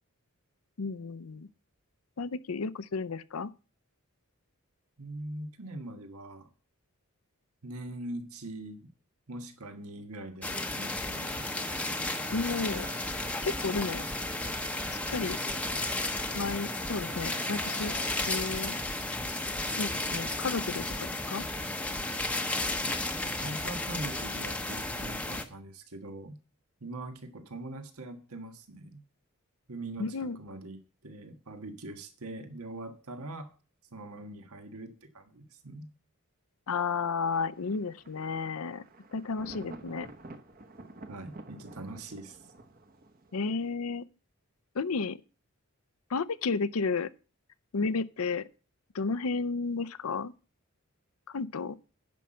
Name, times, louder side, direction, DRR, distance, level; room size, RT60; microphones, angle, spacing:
voice 1, 0.8-1.5 2.2-3.5 12.3-12.9 13.4-14.0 14.9-15.4 16.3-17.9 18.3-18.7 19.8-21.4 30.0-30.4 36.7-38.8 39.1-40.1 43.3-44.0 44.7-45.2 46.1-47.1 47.7-48.5 48.9-50.3 51.3-51.8, left 4 dB, 80° left, 0.6 m, -32 dB
voice 2, 5.0-6.5 7.6-8.9 9.3-11.5 22.8-26.4 26.8-29.0 29.7-33.5 33.9-35.9 41.1-42.5, right 2 dB, 85° right, 1.5 m, -42 dB
sound 1, 10.4-25.4, left 2 dB, 5° left, 0.7 m, -33 dB
sound 2, 11.2-19.1, right 4 dB, 65° right, 3.1 m, -50 dB
Thunder, 37.3-43.7, right 2 dB, 40° right, 1.0 m, -50 dB
10.5 x 5.7 x 7.6 m
head